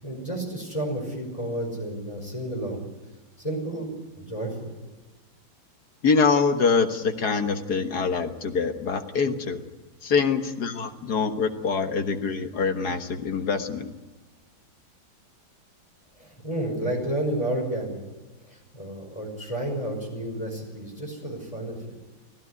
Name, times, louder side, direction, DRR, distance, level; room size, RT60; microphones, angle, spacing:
voice 1, 0.0-2.8 3.4-4.7 16.2-18.0 18.5-21.8, right 1 dB, 15° left, 2 dB, 5.6 m, -31 dB
voice 2, 6.0-9.6 10.0-13.9, left 5 dB, 55° left, 7 dB, 1.9 m, -24 dB
25.0 x 15.0 x 9.5 m, 1.2 s
omnidirectional pair, 2.1 m